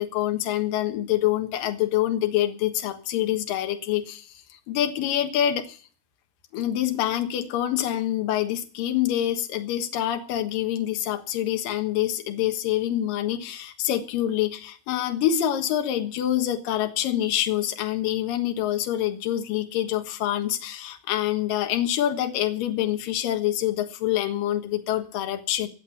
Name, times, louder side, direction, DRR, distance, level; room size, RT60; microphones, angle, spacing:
voice 1, 0.0-4.4 4.7-5.8 6.5-25.7, left 12 dB, 65° left, 5 dB, 2.4 m, -26 dB
17.5 x 7.6 x 8.6 m, 0.43 s
omnidirectional pair, 5.7 m